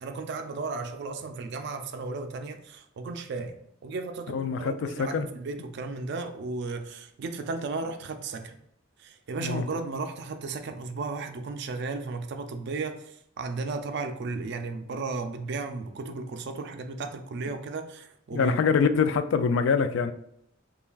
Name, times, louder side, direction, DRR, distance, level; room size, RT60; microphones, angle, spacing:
voice 1, 0.0-3.6 3.8-8.6 9.0-18.6, right 3 dB, 60° right, 7 dB, 0.4 m, -34 dB
voice 2, 4.3-5.3 9.4-9.7 18.3-20.1, left 5 dB, 70° left, 10 dB, 0.3 m, -25 dB
5.5 x 2.3 x 2.3 m, 0.75 s
head